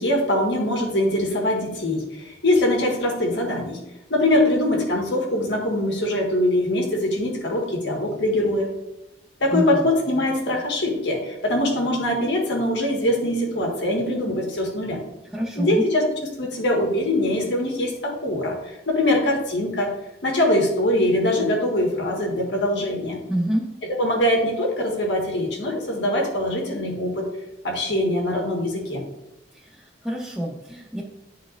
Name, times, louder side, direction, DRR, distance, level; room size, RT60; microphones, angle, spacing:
voice 1, 0.0-3.8 4.1-8.7 9.4-15.0 15.5-16.0 16.4-20.0 20.2-23.2 24.0-27.3 27.6-29.0, left 1 dB, 90° left, 0 dB, 1.6 m, -23 dB
voice 2, 9.5-9.9 15.3-15.8 23.3-23.7 29.5-31.0, right 1 dB, ahead, -8 dB, 0.8 m, -27 dB
11.5 x 4.1 x 2.5 m, 0.90 s
head